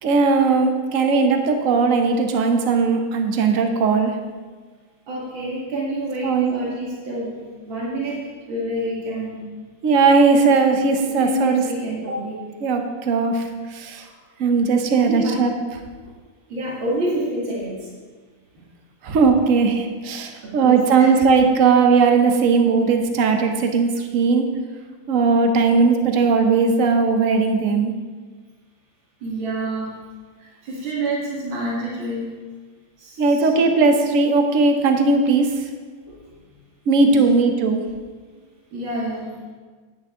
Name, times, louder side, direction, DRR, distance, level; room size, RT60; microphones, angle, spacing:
voice 1, 0.0-4.2 6.2-6.5 9.8-11.6 12.6-14.1 14.4-15.5 19.0-24.5 25.1-27.9 33.2-35.7 36.9-37.8, right 4 dB, 50° right, 5 dB, 1.2 m, -18 dB
voice 2, 5.1-7.4 7.6-8.2 8.5-9.4 11.0-12.4 13.9-14.1 14.9-15.4 16.5-17.9 20.4-21.1 29.2-29.9 30.4-32.3 33.0-33.6 36.1-36.2 37.0-37.3 38.7-39.3, right 1 dB, 80° right, -5 dB, 2.9 m, -28 dB
11.5 x 8.9 x 3.8 m, 1.5 s
omnidirectional pair, 2.1 m